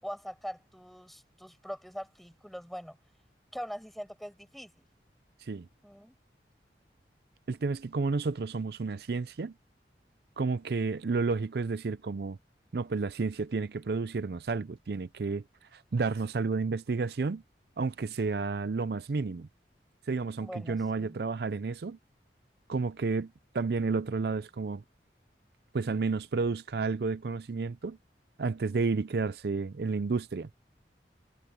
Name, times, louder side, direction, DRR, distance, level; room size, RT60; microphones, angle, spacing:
voice 1, 0.0-3.0 3.5-4.8 5.8-6.1 20.4-21.2, equal, ahead, 6.4 m, -42 dB
voice 2, 7.5-9.5 10.4-12.4 12.7-17.4 17.8-19.5 20.1-22.0 22.7-24.8 25.7-28.0 28.4-30.5, right 4 dB, 60° right, 0.5 m, -31 dB
head